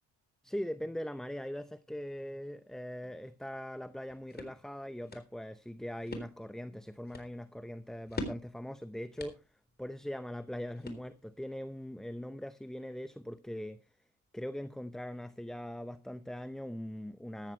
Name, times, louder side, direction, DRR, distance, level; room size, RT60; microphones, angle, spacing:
voice 1, 0.4-9.4 9.8-13.8 14.3-17.5, equal, ahead, 0.7 m, -41 dB
sound 1, 3.8-11.5, left 2 dB, 35° left, 3.8 m, -47 dB
14.0 x 14.0 x 3.1 m
cardioid pair, 90°, 30 cm